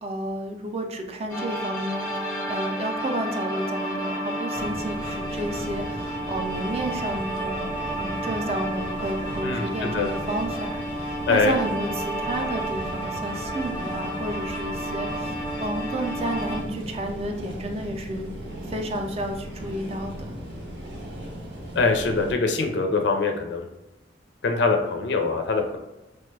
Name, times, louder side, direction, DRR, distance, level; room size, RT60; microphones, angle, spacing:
voice 1, 0.0-15.3 15.6-18.3 18.7-20.4, right 1 dB, 35° right, 4 dB, 0.4 m, -31 dB
sound 1, 1.3-16.6, right 1 dB, 15° left, 0.5 m, -31 dB
sound 2, 4.5-22.3, equal, 75° right, 0.7 m, -37 dB
voice 2, 9.4-10.1 11.3-11.6 21.8-23.6 24.4-25.8, left 4 dB, 75° left, 4 dB, 0.5 m, -23 dB
3.2 x 2.1 x 3.2 m, 1.0 s
head